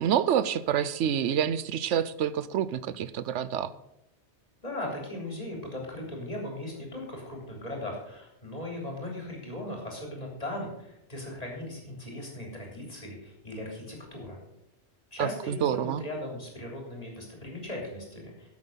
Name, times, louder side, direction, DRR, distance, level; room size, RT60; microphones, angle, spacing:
voice 1, 0.0-3.7 15.2-16.0, right 9 dB, 85° right, 16 dB, 1.0 m, -27 dB
voice 2, 4.6-14.4 15.1-18.5, left 1 dB, 35° left, -1 dB, 3.5 m, -38 dB
12.5 x 7.8 x 5.6 m, 0.81 s
omnidirectional pair, 1.2 m